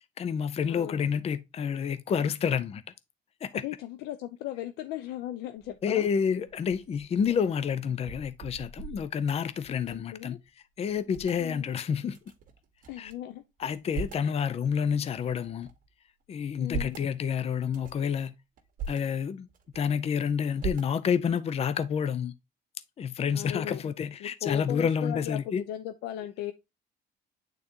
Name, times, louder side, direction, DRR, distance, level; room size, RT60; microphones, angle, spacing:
voice 1, 0.2-2.8 3.4-3.6 5.8-10.4 10.8-12.2 13.0-13.1 13.6-15.7 16.3-18.3 18.9-19.5 19.7-22.3 23.0-25.6, left 7 dB, 35° left, 0.6 m, -29 dB
voice 2, 0.7-1.0 3.5-6.1 10.1-10.4 11.4-11.6 12.9-13.4 14.2-14.3 16.6-17.0 23.3-23.8 24.2-26.5, left 12 dB, 85° left, 0.6 m, -37 dB
sound 1, 5.6-5.9 6.4-10.2 10.5-10.6 10.8-11.4 12.1-13.1 13.6-14.3 14.9-15.9 16.4-17.1 17.6-18.1 18.6-19.0 19.5-20.1 20.6-21.3, right 4 dB, 55° right, 1.6 m, -40 dB
8.9 x 4.0 x 2.8 m
cardioid pair, 110°, 17 cm